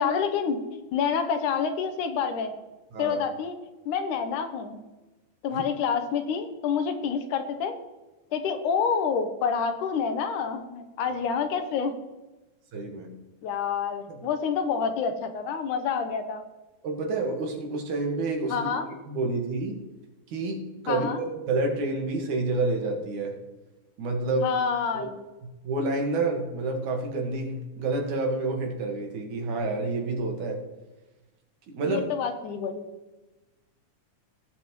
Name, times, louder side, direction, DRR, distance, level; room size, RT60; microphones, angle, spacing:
voice 1, 0.0-2.5 3.0-3.5 3.9-4.8 5.4-7.8 8.3-11.9 13.4-16.4 18.5-18.9 20.9-21.2 24.4-25.2 31.8-32.9, left 6 dB, 75° left, 7 dB, 2.3 m, -28 dB
voice 2, 12.7-13.1 16.8-19.8 20.3-23.3 24.0-24.5 24.9-25.1 25.6-30.6 31.7-32.1, right 2 dB, 70° right, 2 dB, 3.0 m, -29 dB
18.5 x 7.8 x 3.1 m, 1.1 s
omnidirectional pair, 3.8 m